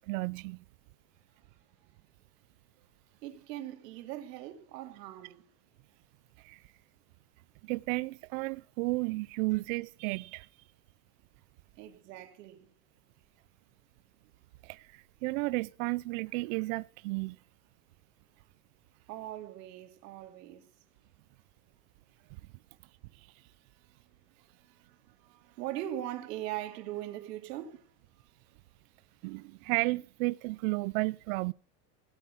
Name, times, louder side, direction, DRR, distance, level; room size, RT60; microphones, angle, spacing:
voice 1, 0.1-0.6 6.4-6.6 7.6-10.5 14.6-17.4 29.2-31.5, right 23 dB, 60° right, 0.5 m, -33 dB
voice 2, 3.2-5.4 11.8-12.7 19.1-20.7 24.6-27.9, right 13 dB, 80° right, 2.8 m, -41 dB
16.5 x 8.3 x 5.6 m
supercardioid pair, 150°, 48 cm